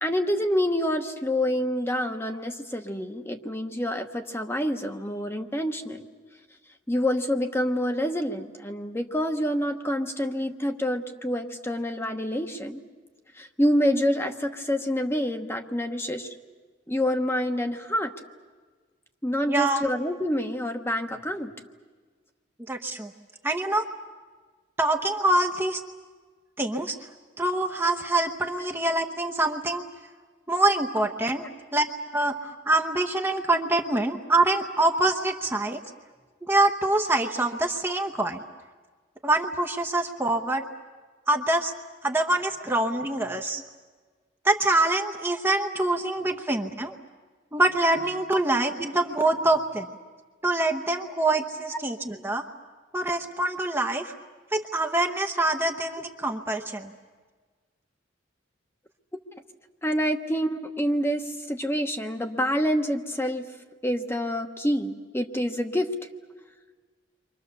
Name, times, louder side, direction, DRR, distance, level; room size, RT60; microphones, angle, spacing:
voice 1, 0.0-6.0 6.9-12.8 13.3-16.4 16.9-18.1 19.2-21.5 28.6-28.7 31.4-31.5 46.3-46.4 48.3-48.4 51.0-51.1 51.7-51.8 59.8-63.4 63.8-65.9, equal, 15° left, 5 dB, 1.1 m, -27 dB
voice 2, 19.5-19.8 22.7-23.1 23.4-23.9 24.8-25.8 26.6-27.0 27.4-29.8 30.5-31.4 31.7-31.9 32.1-35.8 36.4-38.4 39.2-40.6 41.3-41.7 42.0-43.6 44.4-46.9 47.5-49.9 50.4-52.4 52.9-54.1 54.5-56.9, right 2 dB, 10° right, 3 dB, 0.9 m, -25 dB
29.5 x 24.5 x 6.9 m, 1.5 s
head